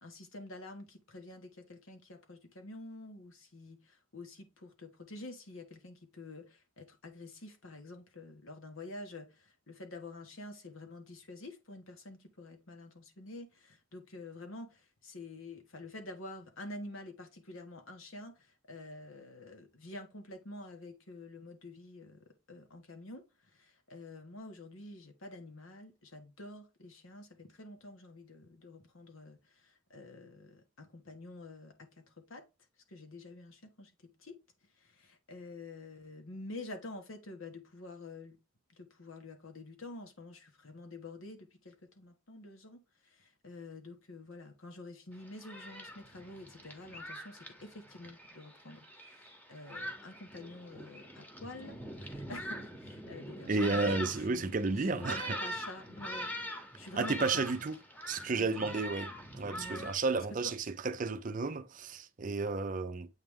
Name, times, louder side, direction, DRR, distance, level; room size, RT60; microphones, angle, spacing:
voice 1, 0.0-32.4 32.9-34.4 34.8-38.4 38.7-56.3 56.8-57.5 58.3-58.7 59.5-60.5, left 2 dB, 80° left, 1.4 m, -48 dB
Thunderstorm, 45.1-59.9, equal, 10° left, 1.0 m, -43 dB
voice 2, 53.5-55.4 57.0-57.8 58.1-59.1 59.4-60.6 60.8-63.1, right 3 dB, 40° right, 0.5 m, -32 dB
8.0 x 3.3 x 3.6 m
head